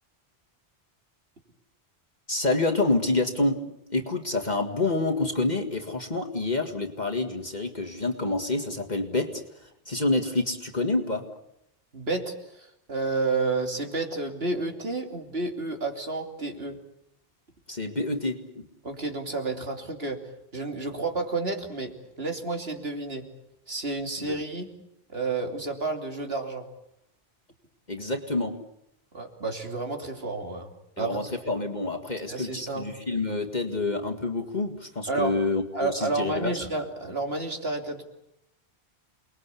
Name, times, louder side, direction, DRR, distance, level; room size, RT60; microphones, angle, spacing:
voice 1, 2.3-3.6 3.9-9.4 9.9-11.2 17.7-18.6 24.2-24.4 27.9-28.5 31.0-36.6, left 2 dB, 45° left, 3 dB, 2.1 m, -27 dB
voice 2, 11.9-16.8 18.8-20.2 20.5-21.9 22.2-23.2 23.7-24.7 25.1-26.6 29.1-30.7 31.0-31.4 32.3-32.9 35.1-35.3 35.7-38.0, right 3 dB, 70° right, 4 dB, 3.4 m, -30 dB
29.0 x 21.0 x 8.4 m, 0.78 s
omnidirectional pair, 1.1 m